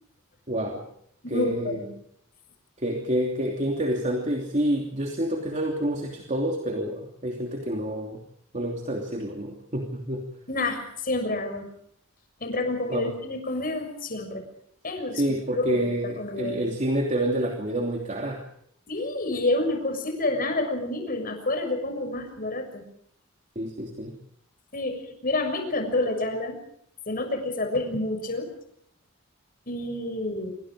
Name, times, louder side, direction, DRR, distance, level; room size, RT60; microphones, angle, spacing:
voice 1, 0.5-0.8 1.3-1.9 2.8-8.2 8.5-10.3 12.9-13.1 15.2-18.4 23.5-24.2, right 1 dB, 35° right, 2 dB, 3.0 m, -28 dB
voice 2, 1.2-1.9 10.5-11.7 12.4-14.5 14.8-15.2 15.5-16.6 18.9-22.8 24.7-26.6 27.1-28.5 29.7-30.5, left 2 dB, 45° left, 6 dB, 6.6 m, -28 dB
27.5 x 24.5 x 5.0 m, 0.66 s
head